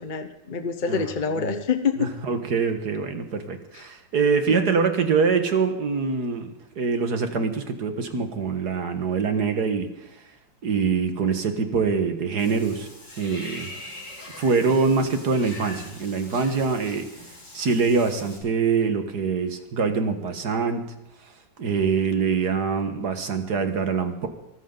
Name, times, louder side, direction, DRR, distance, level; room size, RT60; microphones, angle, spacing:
voice 1, 0.0-2.1 4.5-4.7, left 6 dB, 35° left, 8 dB, 0.8 m, -26 dB
voice 2, 2.0-9.9 10.6-12.9 13.2-13.7 14.4-17.1 17.5-20.9 21.6-24.3, right 5 dB, 55° right, 8 dB, 2.0 m, -24 dB
Water / Bathtub (filling or washing), 12.4-18.4, left 1 dB, 60° left, 5.6 m, -42 dB
23.0 x 14.5 x 4.0 m, 0.89 s
omnidirectional pair, 2.1 m